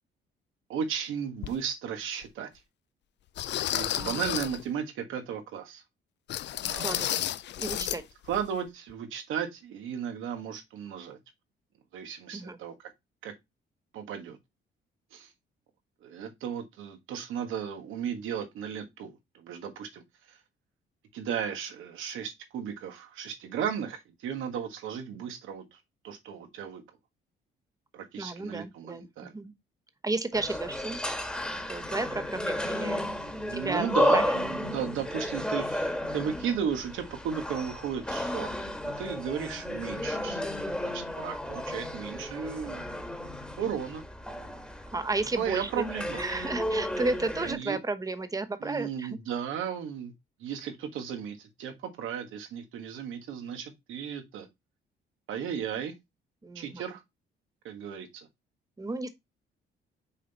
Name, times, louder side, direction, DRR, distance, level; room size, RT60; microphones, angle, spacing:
voice 1, 0.7-2.5 3.7-5.8 6.6-7.0 8.3-11.2 11.9-12.9 13.2-13.3 13.9-14.4 15.1-15.3 16.0-20.0 20.3-20.4 21.1-25.8 26.0-26.8 27.9-29.3 33.2-38.6 38.8-40.4 40.8-42.8 43.6-44.0 45.4-46.2 47.4-47.8 48.6-50.1 50.4-54.5 55.3-55.9 56.5-57.0 57.6-58.3, right 8 dB, 85° right, 1.4 m, -35 dB
sound 1, 1.4-1.6 2.2-2.3 3.4-4.6 6.3-8.0 8.3-8.5 8.9-9.0, left 12 dB, 60° left, 0.5 m, -32 dB
voice 2, 6.8-7.2 7.6-8.0 12.3-12.6 28.2-29.1 29.3-29.5 30.0-31.0 31.7-33.0 33.5-33.8 34.1-34.3 44.9-49.2 56.4-56.8 58.8-59.1, right 2 dB, 15° right, 1.0 m, -33 dB
sound 2, 30.3-47.5, left 1 dB, 5° left, 1.4 m, -33 dB
6.3 x 3.9 x 4.0 m
cardioid pair, 90°, 20 cm